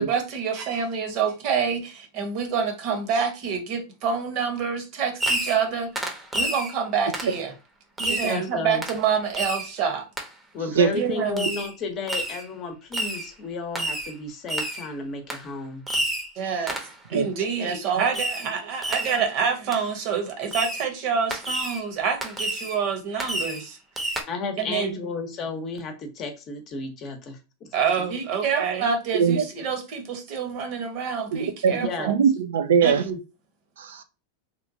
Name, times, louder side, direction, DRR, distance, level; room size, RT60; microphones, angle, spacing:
voice 1, 0.0-6.1 6.3-7.5 8.0-10.1 10.9-11.4 16.4-16.8 17.1-23.8 24.6-25.0 27.7-32.1 32.8-33.2, right 6 dB, 55° right, 0.9 m, -27 dB
Fireworks, 5.2-5.7 6.0-6.7 7.1-7.4 8.0-8.4 8.8-9.0 9.3-9.7 10.2-10.3 11.4-11.7 12.1-12.4 12.9-13.3 13.8-14.1 14.5-14.9 15.3-15.4 15.9-16.3 16.7-16.9 18.1-18.5 18.8-19.2 19.7-19.8 20.5-20.9 21.3-21.8 22.2-22.8 23.2-23.7 24.0-24.2, right 1 dB, 10° right, 0.7 m, -29 dB
voice 2, 8.2-8.8 10.5-15.8 24.3-27.7 31.7-32.1, left 4 dB, 40° left, 0.8 m, -33 dB
voice 3, 29.1-29.4 31.3-31.7 32.1-33.0 33.8-34.0, right 7 dB, 80° right, 0.3 m, -21 dB
3.0 x 2.2 x 2.6 m
hypercardioid pair, 105°, 0 cm